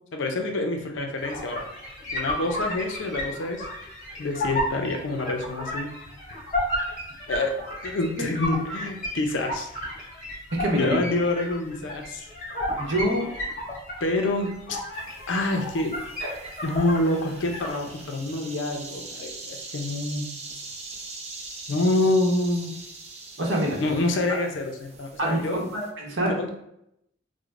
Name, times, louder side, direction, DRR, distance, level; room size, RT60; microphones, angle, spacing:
voice 1, 0.1-1.7 2.1-3.6 4.2-5.9 7.3-7.6 7.8-9.7 10.7-12.3 14.0-14.5 15.3-15.9 16.6-20.4 21.7-22.7 23.8-25.6 26.2-26.5, left 2 dB, 80° left, 3 dB, 0.5 m, -27 dB
sound 1, 1.2-17.7, left 1 dB, 45° left, 1.3 m, -33 dB
voice 2, 10.6-11.0 12.8-13.3 16.2-16.3 23.4-23.8 25.2-25.4 25.7-26.3, right 1 dB, 80° right, -1 dB, 0.9 m, -25 dB
sound 2, 14.9-25.9, right 3 dB, 35° right, 0.5 m, -42 dB
4.8 x 2.1 x 2.4 m, 0.79 s
head